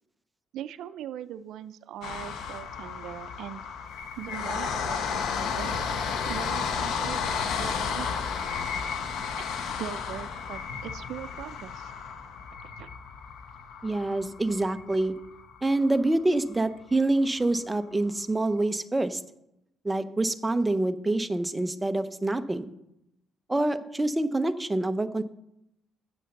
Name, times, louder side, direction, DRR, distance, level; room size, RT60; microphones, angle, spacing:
voice 1, 0.5-3.6 4.2-6.0 6.2-8.2 9.4-11.9 12.6-12.9, right 11 dB, 80° right, 14 dB, 0.5 m, -40 dB
sound 1, 2.0-16.1 16.6-16.7 16.9-17.0, left 6 dB, 80° left, 0.9 m, -33 dB
voice 2, 13.8-15.2 15.6-19.2 19.8-22.7 23.5-25.2, right 2 dB, 15° right, 10 dB, 0.7 m, -26 dB
7.8 x 6.4 x 6.6 m, 0.82 s
cardioid pair, 90°, 0 cm